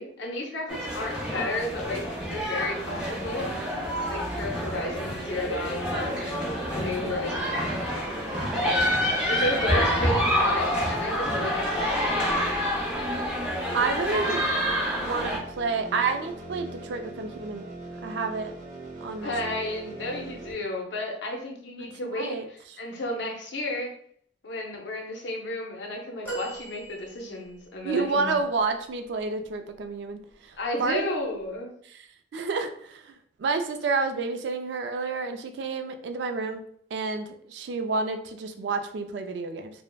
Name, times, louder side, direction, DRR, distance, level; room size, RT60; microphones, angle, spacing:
voice 1, 0.0-2.0 2.3-3.5 4.1-8.7 9.3-12.4 19.2-23.9 24.4-28.4 30.6-31.7, left 1 dB, 70° left, 1 dB, 0.6 m, -33 dB
sound 1, 0.7-15.4, equal, 5° right, 0.5 m, -28 dB
sound 2, 1.8-20.5, right 2 dB, 45° right, 0.7 m, -41 dB
voice 2, 13.7-14.4 15.0-17.7 18.0-18.5 19.0-19.6 21.8-22.5 27.8-30.2 30.8-31.0 32.3-33.0 33.4-36.6 36.9-39.7, right 4 dB, 65° right, 7 dB, 0.3 m, -29 dB
sound 3, 26.2-27.7 28.4-28.5, right 3 dB, 15° left, 1.0 m, -38 dB
3.2 x 2.0 x 2.2 m, 0.62 s
head